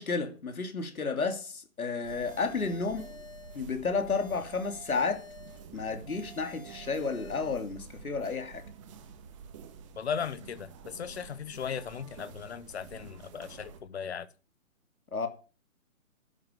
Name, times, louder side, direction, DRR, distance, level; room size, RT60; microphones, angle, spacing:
voice 1, 0.0-3.1 3.5-5.2 5.7-8.6 15.1-15.3, left 4 dB, 90° left, 3.0 m, -32 dB
sound 1, 2.0-13.8, right 6 dB, 20° right, 1.6 m, -50 dB
Electric tone entry chime, 2.1-3.7 4.1-5.7 6.1-7.7, left 1 dB, 10° left, 1.9 m, -51 dB
voice 2, 10.0-14.3, left 7 dB, 50° left, 1.1 m, -37 dB
11.5 x 7.5 x 9.0 m
hypercardioid pair, 160°, 42 cm